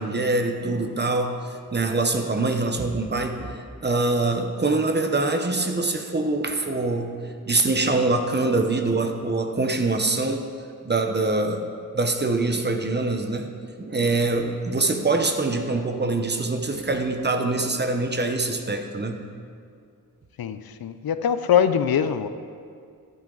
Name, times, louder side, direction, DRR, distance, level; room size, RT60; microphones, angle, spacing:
voice 1, 0.0-10.4 10.8-13.5 13.8-19.2, right 3 dB, 30° right, 6 dB, 0.9 m, -24 dB
voice 2, 20.4-22.3, left 8 dB, 75° left, 11 dB, 0.6 m, -22 dB
12.0 x 11.0 x 3.9 m, 2.2 s
wide cardioid pair, 125°, 36 cm